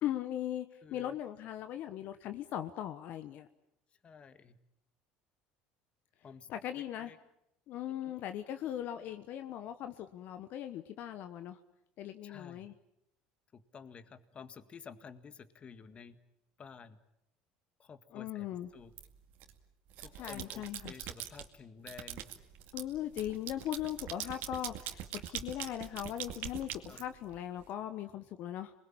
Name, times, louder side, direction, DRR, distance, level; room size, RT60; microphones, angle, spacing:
voice 1, 0.0-0.7 0.9-3.5 6.5-7.1 7.7-11.6 12.0-12.7 18.1-18.7 20.2-20.9 22.7-28.7, left 11 dB, 60° left, 9 dB, 1.3 m, -39 dB
voice 2, 0.8-1.2 4.0-4.6 6.2-6.5 6.7-7.2 7.9-8.2 12.2-12.7 13.5-16.2 16.6-17.0 17.8-18.5 18.7-18.9 20.0-22.3 24.1-24.3 26.9-27.0, left 6 dB, 35° left, 12 dB, 1.8 m, -52 dB
sound 1, 19.0-19.5 19.9-21.5 21.9-27.6, right 11 dB, 70° right, 2.3 m, -43 dB
27.0 x 21.0 x 8.9 m, 0.80 s
supercardioid pair, 100°, 3 cm